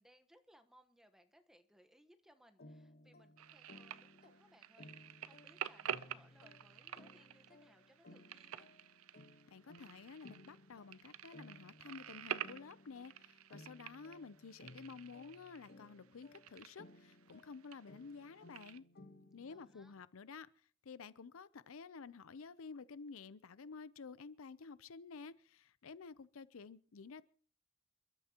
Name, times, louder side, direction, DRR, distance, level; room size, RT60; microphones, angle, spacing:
voice 1, 0.0-8.7 19.5-19.9, equal, ahead, 1.1 m, -67 dB
sound 1, 2.6-20.0, left 1 dB, 50° left, 1.2 m, -60 dB
sound 2, 3.4-18.8, right 9 dB, 85° right, 0.6 m, -49 dB
voice 2, 9.5-18.8 19.3-20.5 20.8-27.2, left 5 dB, 75° left, 0.6 m, -52 dB
29.0 x 12.0 x 2.9 m
head